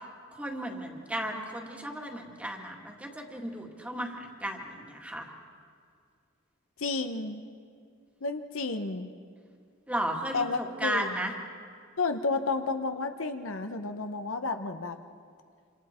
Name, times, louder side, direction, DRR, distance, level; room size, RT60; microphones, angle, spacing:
voice 1, 0.3-5.3 9.9-11.3, right 1 dB, 5° right, 1 dB, 2.0 m, -34 dB
voice 2, 6.8-7.4 8.2-9.1 10.3-11.3 12.0-15.0, left 3 dB, 75° left, 7 dB, 1.0 m, -31 dB
27.0 x 26.5 x 4.4 m, 2.2 s
head